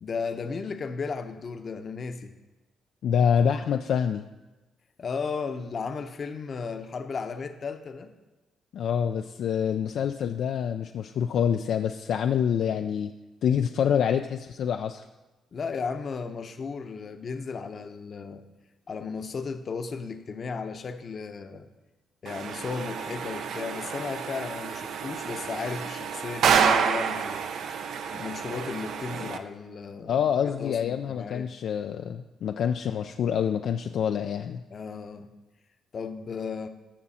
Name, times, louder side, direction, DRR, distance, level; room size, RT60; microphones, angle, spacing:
voice 1, 0.0-2.3 5.0-8.1 15.5-18.4 18.9-21.7 22.2-27.5 28.1-31.5 34.7-35.3 35.9-36.7, left 5 dB, 45° left, 8 dB, 0.8 m, -35 dB
voice 2, 3.0-4.2 8.7-13.1 13.4-15.1 30.1-34.6, left 8 dB, 70° left, 6 dB, 0.4 m, -26 dB
sound 1, 22.3-29.4, right 7 dB, 70° right, 0.6 m, -29 dB
13.0 x 6.1 x 4.2 m, 1.1 s
cardioid pair, 90°, 0 cm